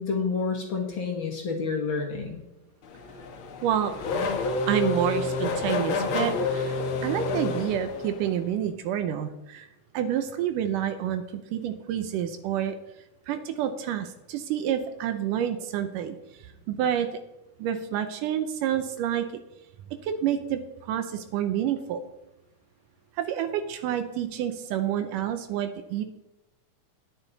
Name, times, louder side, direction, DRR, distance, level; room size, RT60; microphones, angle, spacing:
voice 1, 0.0-2.4, left 5 dB, 50° left, 1 dB, 1.7 m, -29 dB
Race car auto racing / Accelerating revving vroom, 2.9-8.4, left 3 dB, 70° left, 1.2 m, -29 dB
voice 2, 3.6-3.9 4.7-6.8 7.0-9.7 9.9-12.8 13.3-16.2 16.7-17.1 17.6-19.3 20.0-20.6 20.9-22.0 23.2-26.0, right 10 dB, 80° right, 9 dB, 2.3 m, -28 dB
10.0 x 9.7 x 4.0 m, 0.96 s
omnidirectional pair, 3.8 m